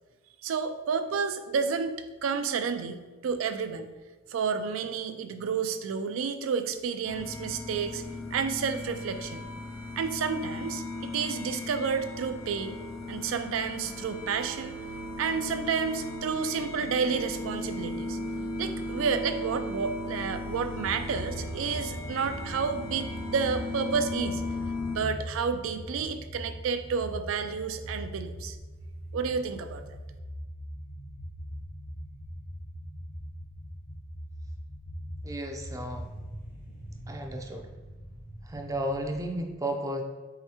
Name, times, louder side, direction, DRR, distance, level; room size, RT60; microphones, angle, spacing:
voice 1, 0.4-3.9 4.3-8.0 8.3-9.4 10.0-12.8 13.1-14.8 15.2-18.2 18.6-24.4 24.9-28.6 29.1-29.8, right 5 dB, 80° right, 9 dB, 0.4 m, -30 dB
sound 1, 7.0-25.0, left 2 dB, 85° left, 0.5 m, -37 dB
sound 2, 20.8-39.4, equal, 45° left, 1.0 m, -41 dB
voice 2, 35.2-36.1 37.1-37.7 38.5-40.0, right 1 dB, 15° right, 3 dB, 0.4 m, -33 dB
4.7 x 3.1 x 2.9 m, 1.2 s
head